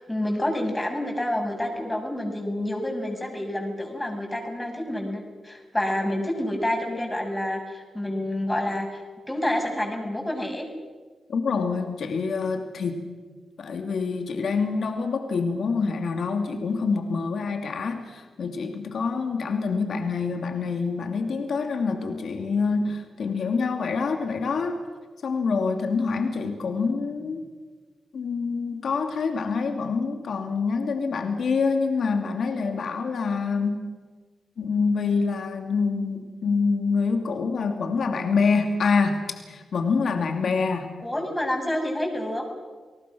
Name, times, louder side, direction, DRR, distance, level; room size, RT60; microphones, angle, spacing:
voice 1, 0.0-9.0 9.3-10.7 41.0-42.4, left 1 dB, 15° left, 2 dB, 7.0 m, -28 dB
voice 2, 11.3-13.1 13.6-24.7 25.2-27.5 28.1-33.8 34.6-40.9, left 4 dB, 70° left, 4 dB, 2.7 m, -26 dB
29.5 x 19.0 x 6.3 m, 1.4 s
cardioid pair, 55°, 0 cm